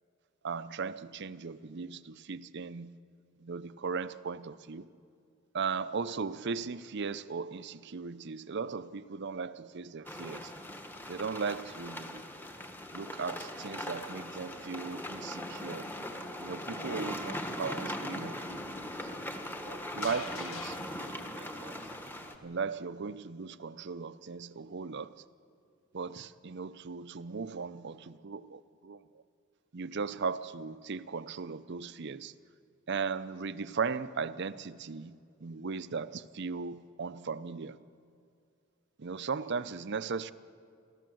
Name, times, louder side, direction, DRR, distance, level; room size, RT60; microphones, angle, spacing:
voice 1, 0.4-3.0 3.4-4.8 5.5-10.5 11.1-12.2 12.9-15.9 16.4-18.6 19.1-19.2 19.7-21.7 22.4-25.1 25.9-29.0 29.7-32.3 32.9-37.8 39.0-40.3, right 5 dB, 55° right, 0.6 m, -37 dB
sound 1, 10.0-22.3, left 1 dB, 10° left, 1.3 m, -40 dB
sound 2, 18.5-22.7 23.0-23.1, left 6 dB, 85° left, 1.5 m, -51 dB
28.5 x 13.0 x 7.8 m
head